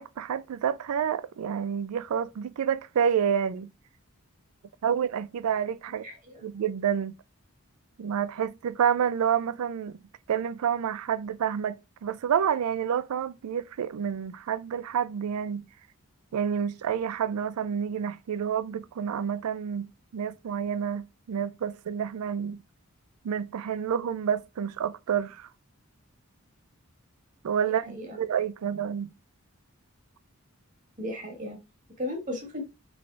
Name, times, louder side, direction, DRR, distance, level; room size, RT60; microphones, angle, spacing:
voice 1, 0.0-3.7 4.8-6.0 6.4-7.1 8.0-10.0 10.3-15.6 16.3-19.9 20.1-22.6 23.2-25.5 27.4-29.1, right 8 dB, 80° right, 0.4 m, -29 dB
voice 2, 6.0-6.4 27.8-28.2 31.0-31.6 32.0-32.6, left 1 dB, 35° right, 1.4 m, -35 dB
3.8 x 3.7 x 3.2 m
head